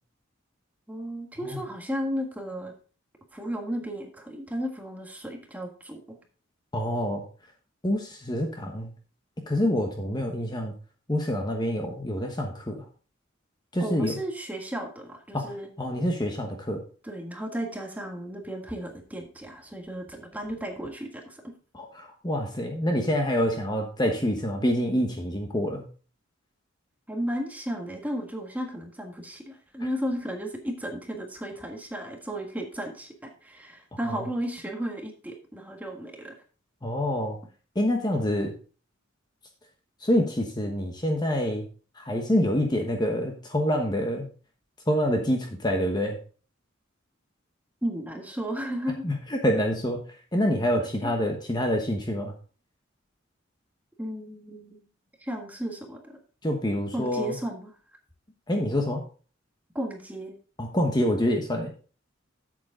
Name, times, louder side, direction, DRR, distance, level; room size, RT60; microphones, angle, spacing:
voice 1, 0.9-2.7 3.3-6.2 13.8-15.7 17.0-21.5 27.1-36.3 47.8-49.0 50.8-51.1 54.0-54.8 55.2-56.2 56.9-57.7 59.7-60.3, equal, 10° right, 2 dB, 1.5 m, -34 dB
voice 2, 6.7-7.2 7.8-8.9 9.5-10.7 11.1-12.8 13.7-14.1 15.3-15.5 15.8-16.8 21.7-25.8 34.2-34.3 36.8-37.4 37.7-38.5 40.0-41.6 42.0-44.3 44.9-46.2 49.0-49.1 49.4-50.0 50.3-52.3 56.4-57.3 58.5-59.0 60.6-61.7, equal, 20° left, 3 dB, 1.1 m, -26 dB
8.3 x 7.8 x 3.7 m, 0.39 s
head